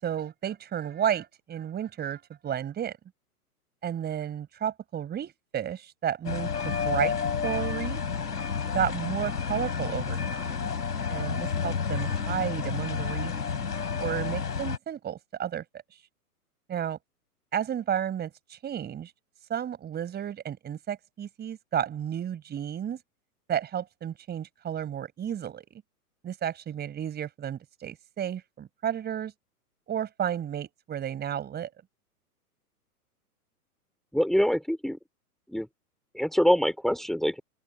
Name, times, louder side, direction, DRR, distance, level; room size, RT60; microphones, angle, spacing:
voice 1, 0.0-3.0 3.8-7.1 7.4-8.0 8.7-10.2 10.6-10.7 11.1-13.3 14.0-15.6 16.7-17.0 17.5-19.1 19.5-23.0 23.5-25.8 26.2-29.3 29.9-31.7, right 9 dB, 20° right, 5.5 m, -32 dB
sound 1, 6.2-14.8, left 6 dB, 80° left, 6.4 m, -30 dB
voice 2, 34.1-35.0 35.5-35.7 36.1-37.4, equal, ahead, 4.3 m, -24 dB
open air
hypercardioid pair, 115°, 46 cm